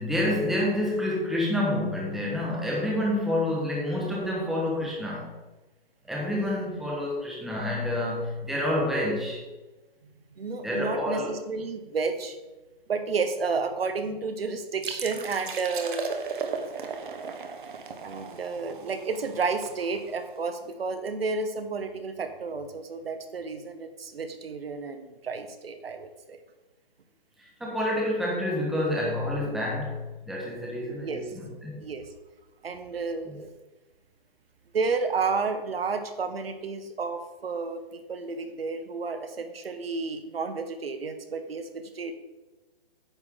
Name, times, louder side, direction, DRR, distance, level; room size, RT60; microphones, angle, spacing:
voice 1, 0.0-5.3 6.1-9.4 10.6-11.4 27.6-31.8 33.3-33.4, left 1 dB, ahead, -3 dB, 0.9 m, -28 dB
voice 2, 10.4-12.4 12.9-16.1 18.0-26.4 30.8-31.2 31.8-32.1 32.6-33.5 34.7-41.7 41.9-42.1, right 4 dB, 75° right, 7 dB, 1.3 m, -31 dB
sound 1, 14.8-20.4, right 5 dB, 55° right, 1.2 m, -36 dB
9.6 x 6.5 x 3.7 m, 1.2 s
hypercardioid pair, 160°, 30 cm